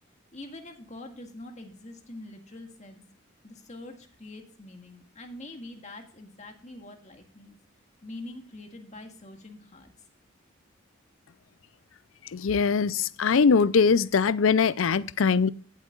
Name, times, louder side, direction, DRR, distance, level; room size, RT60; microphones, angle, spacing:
voice 1, 0.3-3.0 3.4-7.6 8.0-9.9, left 2 dB, 35° left, 1.9 m, -44 dB
voice 2, 12.3-15.5, left 5 dB, 80° left, 0.5 m, -22 dB
17.5 x 8.3 x 2.4 m
head